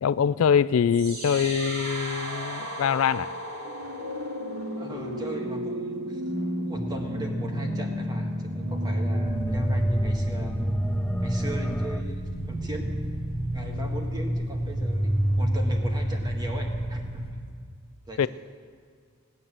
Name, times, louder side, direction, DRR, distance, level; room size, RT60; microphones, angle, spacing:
voice 1, 0.0-3.3 18.2-18.3, left 7 dB, 75° left, 16 dB, 0.4 m, -23 dB
sound 1, 0.9-16.9, equal, 80° right, 3.2 m, -31 dB
voice 2, 4.8-6.2 6.6-10.6 11.2-12.9 13.5-15.1 15.4-17.2 18.1-18.3, equal, 20° right, 1 dB, 1.7 m, -38 dB
sound 2, 6.7-12.0, equal, 5° left, 0.4 m, -33 dB
sound 3, 9.2-17.3, right 1 dB, 50° right, 2.1 m, -34 dB
17.5 x 9.5 x 7.5 m, 2.1 s
head